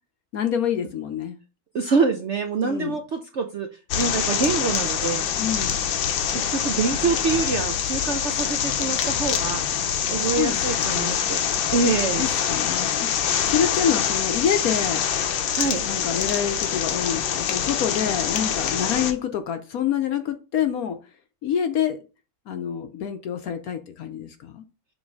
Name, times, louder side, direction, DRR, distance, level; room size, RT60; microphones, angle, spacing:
voice 1, 0.3-1.4 2.6-3.0 5.4-5.9 10.3-11.2 12.2-15.0 15.8-21.0 21.4-22.0 22.5-24.6, left 8 dB, 65° left, 1.0 m, -27 dB
voice 2, 1.7-3.7 3.9-5.3 6.3-9.6 10.1-12.3 15.5-15.9, right 4 dB, 60° right, 0.7 m, -25 dB
sound 1, 3.9-19.1, left 8 dB, 90° left, 1.5 m, -25 dB
7.1 x 3.1 x 5.3 m
omnidirectional pair, 1.9 m